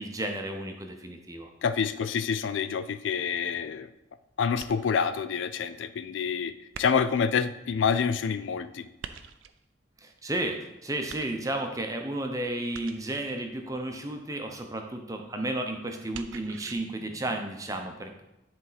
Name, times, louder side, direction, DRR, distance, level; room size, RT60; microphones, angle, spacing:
voice 1, 0.0-1.5 10.0-18.2, right 1 dB, 15° right, 4 dB, 0.7 m, -33 dB
voice 2, 1.6-3.9 4.4-8.9, left 6 dB, 75° left, 13 dB, 0.4 m, -27 dB
sound 1, 4.6-5.1 6.7-7.3 9.0-9.6 11.1-11.7 12.7-13.3 16.1-16.7, right 7 dB, 85° right, 0.5 m, -44 dB
10.0 x 4.2 x 4.1 m, 0.93 s
head